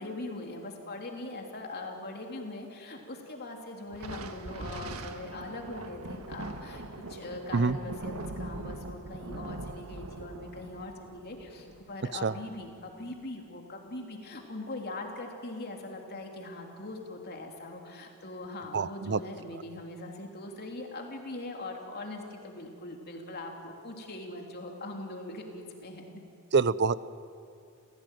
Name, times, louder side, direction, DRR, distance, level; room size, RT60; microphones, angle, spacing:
voice 1, 0.0-6.8 7.1-26.0, left 2 dB, 50° left, 1 dB, 3.3 m, -41 dB
Thunder, 3.9-12.7, right 2 dB, 85° right, 1.6 m, -42 dB
voice 2, 18.7-19.2 26.5-27.0, right 4 dB, 55° right, 17 dB, 0.6 m, -25 dB
28.5 x 17.0 x 9.3 m, 2.5 s
head